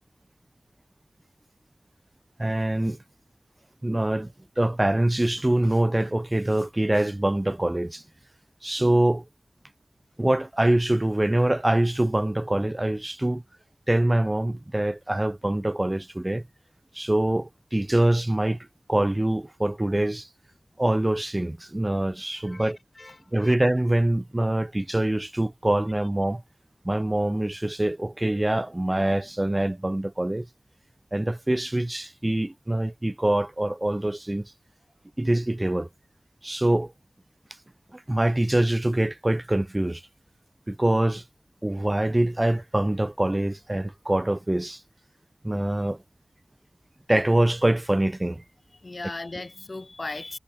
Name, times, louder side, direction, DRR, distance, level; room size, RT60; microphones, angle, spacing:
voice 1, 2.4-3.0 3.8-8.0 8.6-9.2 10.2-13.4 13.9-16.4 16.9-18.6 18.9-20.3 20.8-22.8 23.3-26.4 26.8-30.5 31.1-34.5 35.2-35.9 36.4-36.9 37.9-40.0 40.7-41.2 41.6-44.8 45.4-46.0 47.1-48.4, right 1 dB, 20° right, 0.5 m, -24 dB
voice 2, 22.4-23.6 48.7-50.4, left 2 dB, 45° left, 0.4 m, -38 dB
wide cardioid pair, 50°, 0 cm